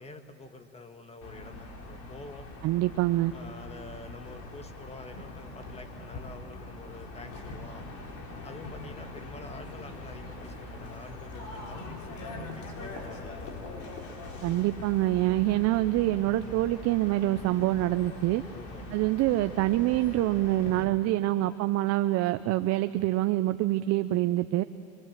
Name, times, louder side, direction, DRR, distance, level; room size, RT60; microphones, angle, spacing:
voice 1, 0.0-2.5 3.3-7.9 8.4-13.6 18.5-18.9, left 2 dB, 15° left, 7 dB, 1.7 m, -47 dB
sound 1, 1.2-20.8, left 2 dB, 55° left, 4.2 m, -42 dB
voice 2, 2.6-3.3 14.4-18.4 18.9-24.6, right 16 dB, 45° right, 11 dB, 0.6 m, -26 dB
26.0 x 22.0 x 7.5 m, 2.7 s
supercardioid pair, 110°, 35 cm